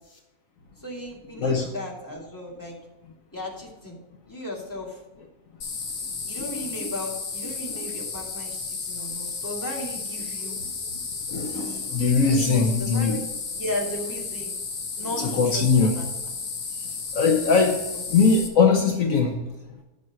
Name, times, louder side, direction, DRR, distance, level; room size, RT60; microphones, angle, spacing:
voice 1, 0.8-2.8 3.3-4.0 4.3-5.0 6.3-10.6 11.5-11.9 12.3-13.2 13.6-14.5 15.0-16.1 17.9-18.1, left 1 dB, 15° left, -3 dB, 2.5 m, -35 dB
sound 1, 5.6-18.5, left 4 dB, 85° left, 1.8 m, -33 dB
voice 2, 11.3-13.2 15.2-15.9 17.1-17.8 18.1-19.3, left 4 dB, 65° left, 3 dB, 1.4 m, -20 dB
11.0 x 6.2 x 6.1 m, 1.0 s
omnidirectional pair, 1.5 m